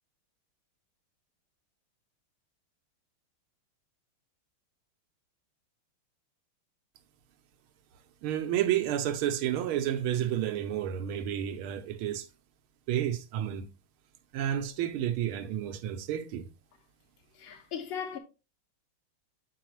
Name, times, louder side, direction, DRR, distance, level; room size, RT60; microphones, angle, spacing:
voice 1, 8.2-12.3 12.9-13.7 14.3-16.5, right 11 dB, 85° right, 1.6 m, -30 dB
voice 2, 17.4-18.2, left 7 dB, 40° left, 1.0 m, -37 dB
8.4 x 4.7 x 3.1 m
omnidirectional pair, 2.3 m